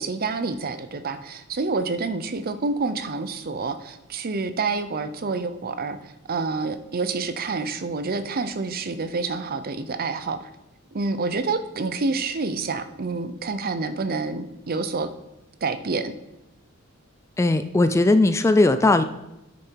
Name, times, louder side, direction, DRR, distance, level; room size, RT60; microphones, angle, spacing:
voice 1, 0.0-10.5 10.9-15.1 15.6-16.1, right 3 dB, 45° right, 11 dB, 0.6 m, -28 dB
voice 2, 17.4-19.0, left 2 dB, 15° left, 10 dB, 0.3 m, -18 dB
9.5 x 6.4 x 4.6 m, 0.91 s
head